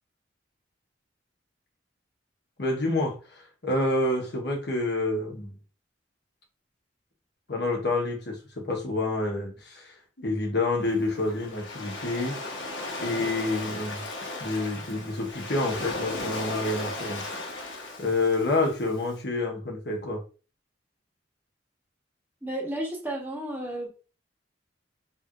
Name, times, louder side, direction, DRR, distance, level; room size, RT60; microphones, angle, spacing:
voice 1, 2.6-5.5 7.5-12.4 13.0-14.0 14.4-17.2 18.0-20.2, left 2 dB, 65° left, 1.3 m, -28 dB
Waves surf, 10.8-19.1, left 2 dB, 85° left, 1.2 m, -36 dB
voice 2, 22.4-23.9, right 1 dB, 10° right, 1.2 m, -32 dB
4.5 x 3.5 x 2.6 m
head